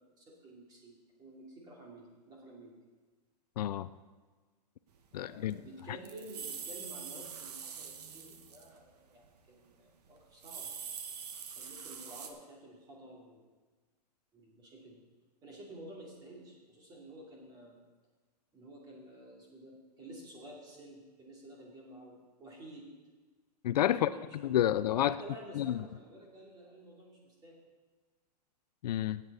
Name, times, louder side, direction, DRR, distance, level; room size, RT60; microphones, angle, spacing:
voice 1, 0.0-2.7 5.1-10.7 11.5-13.4 14.3-15.0 15.4-17.8 18.5-22.9 23.9-24.3 24.6-24.7 25.1-27.6, right 1 dB, 20° right, -2 dB, 2.7 m, -51 dB
voice 2, 3.6-3.9 5.1-5.6 5.9-6.0 23.6-24.1 24.4-25.2 25.5-25.8 28.8-29.2, left 12 dB, 70° left, 15 dB, 0.5 m, -29 dB
sound 1, 5.2-5.3 5.5-8.8 9.1-9.3 10.2-12.3, right 7 dB, 70° right, 1.4 m, -44 dB
17.0 x 8.2 x 4.1 m, 1.4 s
hypercardioid pair, 155°, 21 cm